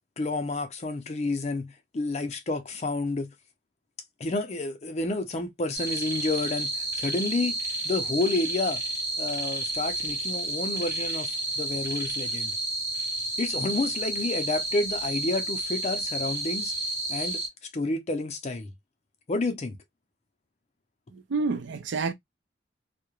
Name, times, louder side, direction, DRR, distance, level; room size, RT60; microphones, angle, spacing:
voice 1, 0.2-3.3 4.2-7.6 7.8-8.8 9.2-12.5 13.4-16.7 17.1-17.4 17.7-18.7 19.3-19.8, left 2 dB, 35° left, 0.5 m, -30 dB
sound 1, 5.7-17.5, right 2 dB, 15° right, 0.9 m, -31 dB
voice 2, 21.1-22.1, right 4 dB, 85° right, 0.4 m, -29 dB
2.3 x 2.1 x 2.8 m
head